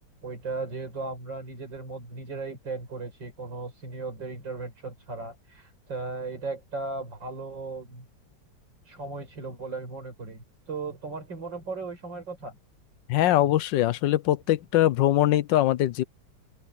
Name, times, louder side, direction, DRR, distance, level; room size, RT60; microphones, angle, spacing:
voice 1, 0.2-8.1 8.9-12.6, right 3 dB, 90° right, 6.1 m, -36 dB
voice 2, 13.1-16.0, left 13 dB, 85° left, 1.4 m, -22 dB
open air
omnidirectional pair, 1.9 m